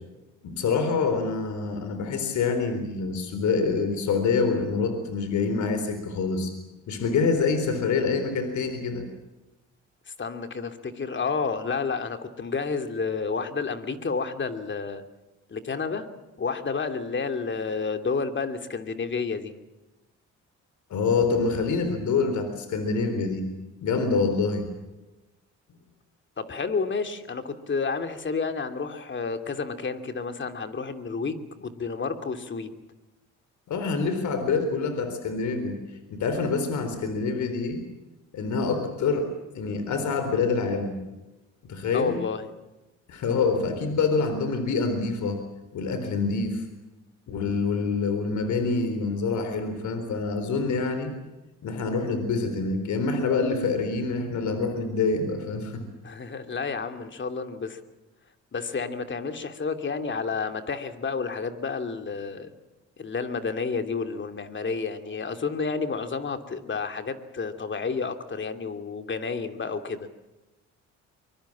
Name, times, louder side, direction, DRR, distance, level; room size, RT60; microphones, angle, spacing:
voice 1, 0.4-6.5 6.9-9.1 20.9-23.5 23.8-24.7 33.7-35.8 36.1-37.8 38.3-41.0 41.6-42.2 43.1-45.4 45.7-46.6 47.3-51.1 51.6-55.8, left 4 dB, 70° left, 8 dB, 4.0 m, -26 dB
voice 2, 10.2-15.0 15.5-16.1 16.4-19.5 26.4-32.7 41.9-42.5 56.0-57.8 58.5-62.5 63.0-70.1, left 5 dB, 40° left, 8 dB, 2.8 m, -30 dB
24.0 x 22.5 x 7.4 m, 1.1 s
cardioid pair, 90°, 30 cm